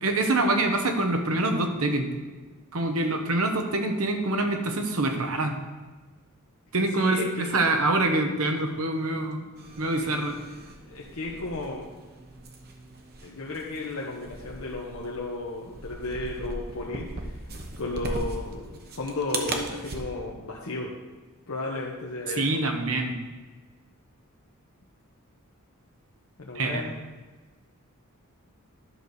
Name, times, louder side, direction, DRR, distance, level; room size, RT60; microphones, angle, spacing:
voice 1, 0.0-2.1 2.7-5.5 6.7-9.5 9.8-10.3 22.4-23.1 26.5-26.9, right 2 dB, 75° right, 5 dB, 1.1 m, -25 dB
voice 2, 6.9-7.6 9.7-10.1 10.6-11.9 13.2-17.4 17.8-20.9 21.5-22.6 26.4-26.9, left 2 dB, 70° left, -3 dB, 1.1 m, -34 dB
sound 1, 9.6-20.0, right 2 dB, 45° right, 1.0 m, -38 dB
11.0 x 4.1 x 6.6 m, 1.3 s
head